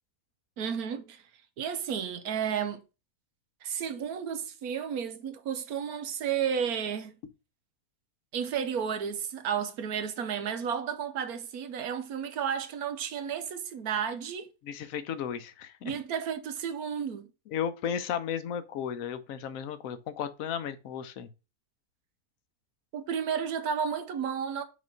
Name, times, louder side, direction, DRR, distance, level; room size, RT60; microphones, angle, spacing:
voice 1, 0.6-1.2 1.6-2.8 3.6-7.1 8.3-14.5 15.8-17.3 22.9-24.6, right 7 dB, 75° right, 1.3 m, -32 dB
voice 2, 14.6-15.9 17.5-21.3, left 8 dB, 65° left, 1.0 m, -34 dB
5.0 x 4.2 x 5.1 m
omnidirectional pair, 1.6 m